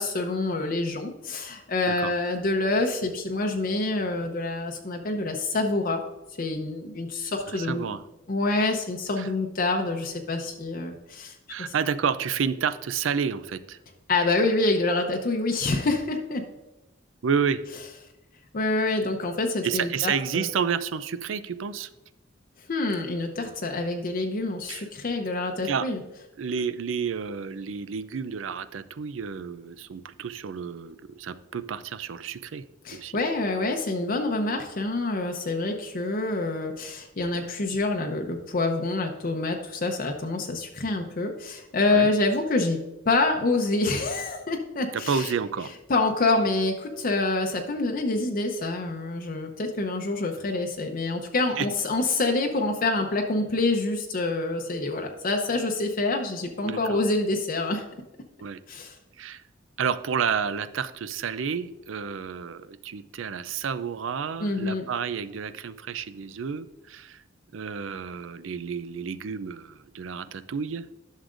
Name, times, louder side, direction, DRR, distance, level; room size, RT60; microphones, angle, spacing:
voice 1, 0.0-6.0 6.4-7.9 8.3-11.7 14.1-16.4 18.5-20.5 22.7-26.0 32.8-42.8 43.1-45.3 45.9-57.8 58.7-59.0 64.4-64.8, left 2 dB, 50° left, 3 dB, 0.7 m, -26 dB
voice 2, 7.5-8.0 9.2-9.3 11.5-13.8 17.2-17.6 19.6-21.9 24.7-24.9 25.6-25.9 26.4-33.2 41.9-42.1 44.9-45.7 51.6-51.7 56.6-57.0 58.4-58.6 59.2-59.4 59.8-67.2 67.5-70.8, right 6 dB, 90° right, 14 dB, 0.5 m, -30 dB
11.0 x 6.5 x 2.5 m, 1.0 s
head